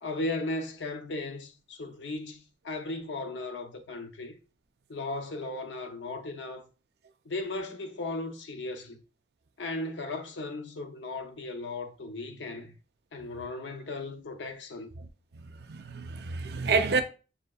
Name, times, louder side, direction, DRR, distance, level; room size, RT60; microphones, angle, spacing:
voice 1, 0.0-4.3 4.9-6.6 7.3-9.0 9.6-12.8 13.1-14.9, left 2 dB, 80° left, 0.7 m, -36 dB
voice 2, 15.4-17.0, right 4 dB, 60° right, 0.5 m, -29 dB
6.9 x 2.7 x 2.3 m
head